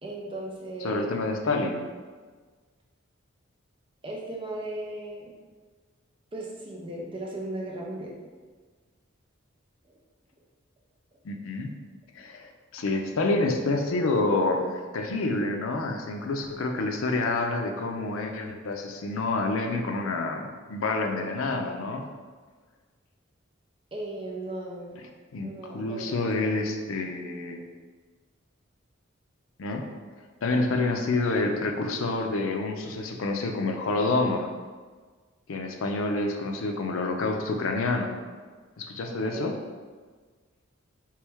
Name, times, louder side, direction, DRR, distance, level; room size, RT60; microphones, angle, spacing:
voice 1, 0.0-1.0 4.0-5.3 6.3-8.2 9.9-10.0 23.9-25.0 25.4-26.1 26.4-26.6 39.1-39.5, right 1 dB, 25° right, -3 dB, 0.6 m, -37 dB
voice 2, 0.8-1.8 11.2-11.7 12.2-22.0 25.3-25.5 25.7-27.6 29.6-29.8 30.4-34.5 35.5-38.1 38.8-39.5, left 2 dB, 85° left, 3 dB, 0.5 m, -28 dB
3.2 x 3.1 x 3.4 m, 1.5 s
head